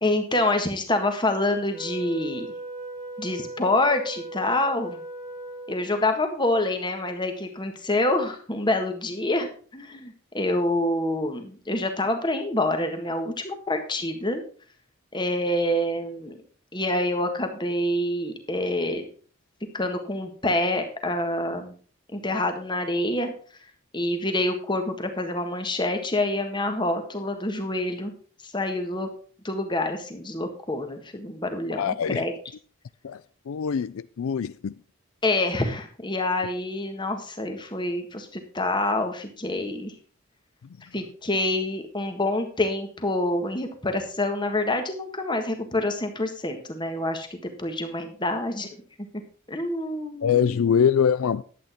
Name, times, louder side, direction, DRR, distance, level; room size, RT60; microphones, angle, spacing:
voice 1, 0.0-2.5 3.2-5.0 5.7-14.4 15.1-16.4 16.7-19.1 19.7-21.7 22.1-23.3 23.9-28.1 28.4-29.1 29.4-32.3 35.2-39.9 40.9-48.7 49.5-50.7, left 1 dB, 20° left, 1.6 m, -27 dB
Wind instrument woodwind instrument, 1.7-6.1, right 2 dB, 15° right, 1.6 m, -38 dB
voice 2, 31.7-32.2 33.0-33.2 33.5-34.7 50.2-51.4, left 7 dB, 80° left, 0.4 m, -23 dB
11.0 x 8.6 x 4.4 m
head